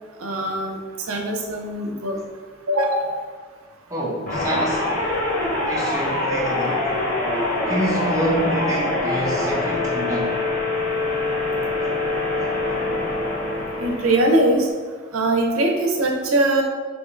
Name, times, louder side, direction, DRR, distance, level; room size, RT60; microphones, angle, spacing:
voice 1, 0.2-0.8 1.1-2.2 2.7-3.1 13.8-14.7 15.1-16.6, right 1 dB, 85° right, 1 dB, 0.6 m, -21 dB
voice 2, 3.9-5.0 5.7-6.9 7.7-10.4, equal, 15° right, -5 dB, 0.5 m, -27 dB
sound 1, 4.3-14.6, left 2 dB, 40° left, 0.7 m, -24 dB
2.8 x 2.4 x 4.1 m, 1.6 s
head